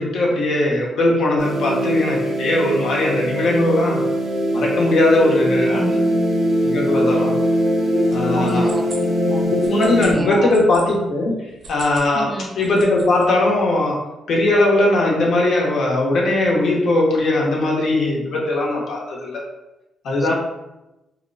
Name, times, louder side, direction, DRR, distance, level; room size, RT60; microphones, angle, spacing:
voice 1, 0.0-4.1 4.5-5.8 6.6-7.4 8.1-8.7 9.4-19.4 20.0-20.3, left 2 dB, 70° left, -2 dB, 0.7 m, -19 dB
sound 1, 1.4-10.1, equal, 85° right, 0.9 m, -21 dB
voice 2, 5.4-6.3 8.4-9.5 10.1-10.5 12.1-12.6 20.2-20.3, right 2 dB, 35° right, 4 dB, 0.4 m, -28 dB
sound 2, 8.0-10.9 11.5-12.1 12.4-13.3, right 3 dB, 65° right, 0.7 m, -40 dB
2.8 x 2.0 x 2.5 m, 0.97 s
supercardioid pair, 55°, 0 cm